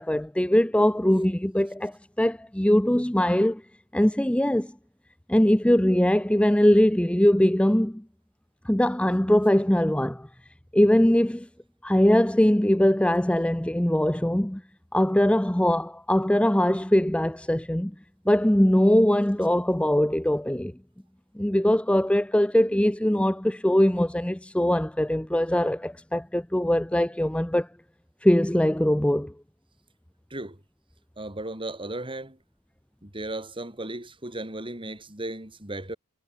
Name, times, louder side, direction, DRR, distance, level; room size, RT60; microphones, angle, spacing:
voice 1, 0.0-3.6 3.9-4.7 5.3-8.0 8.6-10.3 10.7-11.5 11.8-14.6 14.9-17.9 18.3-20.7 21.4-27.7 28.2-29.3, left 1 dB, 5° left, 0.7 m, -21 dB
voice 2, 30.3-30.6 31.2-32.4 33.0-36.0, right 2 dB, 25° right, 7.3 m, -35 dB
head